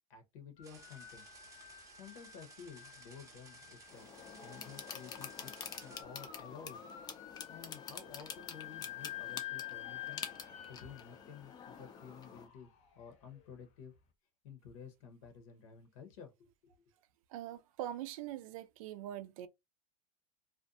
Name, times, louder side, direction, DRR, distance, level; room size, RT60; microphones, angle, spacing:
voice 1, 0.1-1.2 1.9-4.1 4.4-5.5 5.8-6.8 7.5-10.2 10.7-13.9 14.4-16.7, left 6 dB, 70° left, 0.9 m, -53 dB
sound 1, 0.6-13.6, left 12 dB, 40° left, 0.8 m, -50 dB
sound 2, 0.6-6.0, right 5 dB, 20° right, 0.6 m, -58 dB
sound 3, 3.9-12.5, left 6 dB, 20° left, 0.4 m, -48 dB
voice 2, 17.3-19.5, right 12 dB, 70° right, 0.4 m, -43 dB
2.5 x 2.1 x 2.6 m
supercardioid pair, 145°, 18 cm